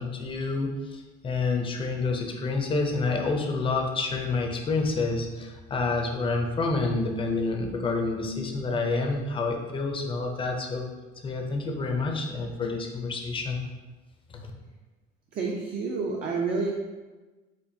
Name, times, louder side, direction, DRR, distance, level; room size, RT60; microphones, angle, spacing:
voice 1, 0.0-10.9 11.2-13.6 14.3-14.5, left 3 dB, 25° left, 3 dB, 0.5 m, -28 dB
voice 2, 15.3-16.7, right 4 dB, 45° right, -1 dB, 0.5 m, -29 dB
4.4 x 2.4 x 2.6 m, 1.2 s
cardioid pair, 115°, 20 cm